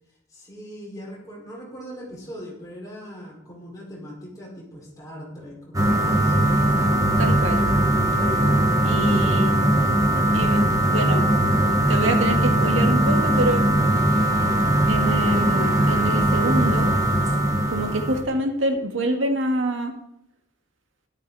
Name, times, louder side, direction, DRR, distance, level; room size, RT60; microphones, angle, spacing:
voice 1, 0.3-6.7 9.0-9.5, equal, 20° left, -4 dB, 5.2 m, -40 dB
sound 1, 5.7-18.2, right 1 dB, 15° right, 1.7 m, -20 dB
voice 2, 7.2-7.6 8.8-9.5 10.3-10.6 10.9-11.3 11.9-13.6 14.9-16.9 17.7-19.9, right 1 dB, 80° right, 4 dB, 1.9 m, -26 dB
13.0 x 12.0 x 4.2 m, 0.81 s
head